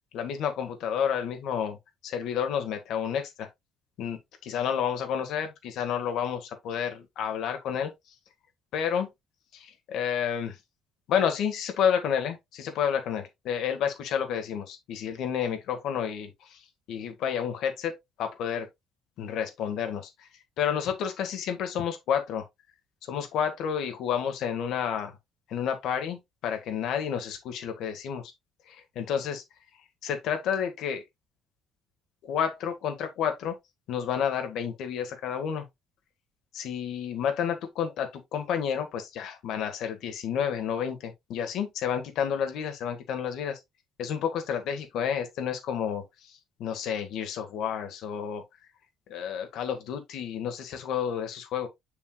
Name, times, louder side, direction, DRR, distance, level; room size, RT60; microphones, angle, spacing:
voice 1, 0.1-1.8 2.0-3.5 4.0-7.9 8.7-9.1 9.5-10.6 11.1-18.7 19.2-20.3 20.6-22.5 23.1-25.2 25.5-28.3 28.7-29.4 30.0-31.0 32.2-33.6 33.9-35.7 36.5-43.6 44.0-48.4 49.1-51.7, left 8 dB, 75° left, 1.7 m, -30 dB
6.9 x 6.6 x 2.3 m
cardioid pair, 140°, 0 cm